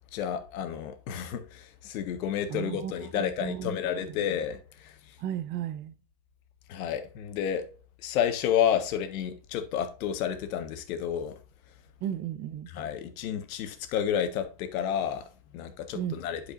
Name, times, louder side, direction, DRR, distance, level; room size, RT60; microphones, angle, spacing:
voice 1, 0.1-5.2 6.7-7.6 8.0-11.3 12.7-16.4, left 9 dB, 85° left, 1.5 m, -31 dB
voice 2, 2.5-4.1 5.2-5.9 12.0-12.7 15.9-16.2, right 10 dB, 25° right, 0.4 m, -35 dB
11.0 x 4.9 x 2.5 m
supercardioid pair, 165°, 41 cm